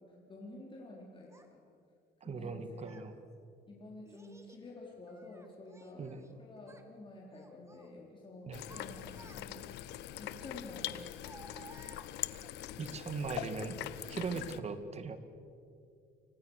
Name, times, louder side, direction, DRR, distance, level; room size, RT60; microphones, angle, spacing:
voice 1, 0.0-1.6 2.2-2.9 3.7-9.6 10.2-11.7 14.3-14.5, left 2 dB, 30° left, -3 dB, 4.5 m, -50 dB
Child speech kid speaking, 1.3-1.5 2.4-3.1 4.1-4.7 5.1-6.3 6.6-6.9 7.3-7.9 8.4-9.8 10.8-12.5, right 2 dB, 15° right, 2.6 m, -57 dB
voice 2, 2.2-3.1 6.0-6.2 8.4-8.6 12.8-13.8 14.1-15.2, right 4 dB, 40° right, 10 dB, 2.1 m, -39 dB
sound 1, 8.5-14.6, left 13 dB, 85° left, 1.1 m, -43 dB
29.0 x 25.5 x 6.7 m, 2.4 s
cardioid pair, 110°, 17 cm